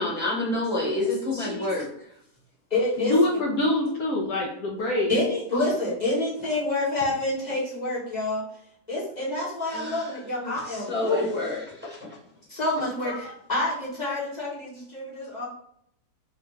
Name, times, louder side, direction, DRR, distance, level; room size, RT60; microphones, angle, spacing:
voice 1, 0.0-1.9 9.7-10.0 10.4-10.5 10.9-12.0 13.0-13.2, left 2 dB, 5° right, -8 dB, 1.2 m, -28 dB
voice 2, 0.8-1.7 2.7-3.2 5.1-8.4 8.9-11.3 12.5-15.5, left 2 dB, 30° left, -8 dB, 1.0 m, -28 dB
voice 3, 3.0-5.1, left 2 dB, 70° left, -3 dB, 1.0 m, -24 dB
3.3 x 2.5 x 3.1 m, 0.71 s
omnidirectional pair, 1.8 m